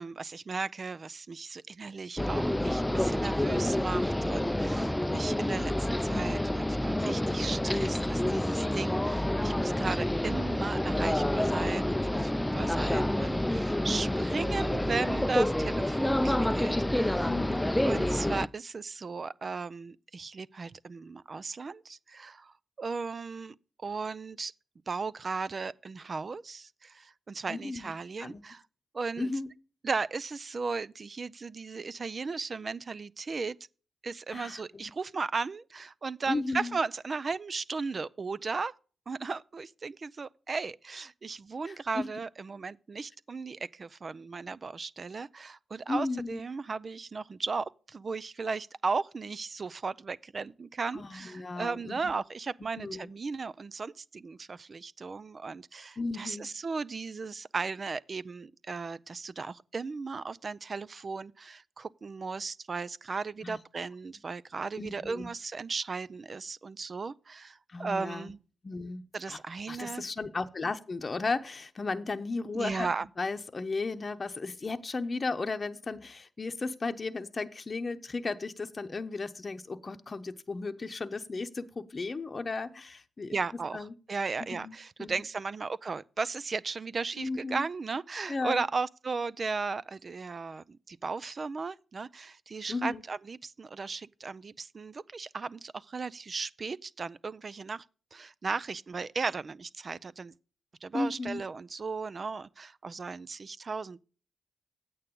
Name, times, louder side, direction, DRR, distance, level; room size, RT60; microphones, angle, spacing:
voice 1, 0.0-17.3 17.8-23.5 23.8-24.5 24.9-28.6 28.9-29.3 29.8-33.6 34.0-38.7 39.1-68.4 69.1-70.0 72.5-73.1 83.3-83.8 84.1-97.8 98.1-100.3 100.8-104.0, right 4 dB, 50° right, 0.5 m, -36 dB
sound 1, 2.2-18.5, left 1 dB, 10° left, 0.5 m, -28 dB
voice 2, 12.4-12.8 17.2-18.1 27.5-27.9 28.2-28.4 29.2-29.5 34.3-34.9 36.3-36.8 41.7-42.0 45.9-46.4 50.9-51.9 52.8-53.1 56.0-56.5 63.4-63.6 64.8-65.3 67.7-68.3 68.6-69.4 69.7-72.9 73.2-83.4 83.7-83.9 84.5-85.2 87.2-87.6 88.3-88.6 92.7-93.0 100.9-101.4, left 3 dB, 45° left, 0.8 m, -35 dB
9.2 x 8.8 x 3.8 m
supercardioid pair, 45°, 0 cm